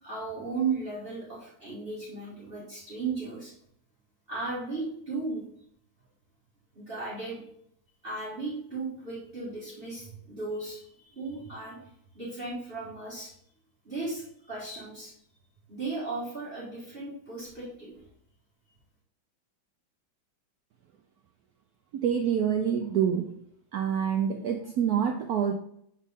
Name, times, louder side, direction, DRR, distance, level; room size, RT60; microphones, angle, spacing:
voice 1, 0.0-3.5 4.3-5.5 6.7-7.4 8.0-13.3 13.8-15.1 15.7-18.0, right 3 dB, 30° right, -7 dB, 1.8 m, -36 dB
voice 2, 21.9-23.3 23.7-25.5, right 8 dB, 80° right, 4 dB, 0.8 m, -26 dB
7.4 x 4.0 x 3.6 m, 0.70 s
omnidirectional pair, 2.2 m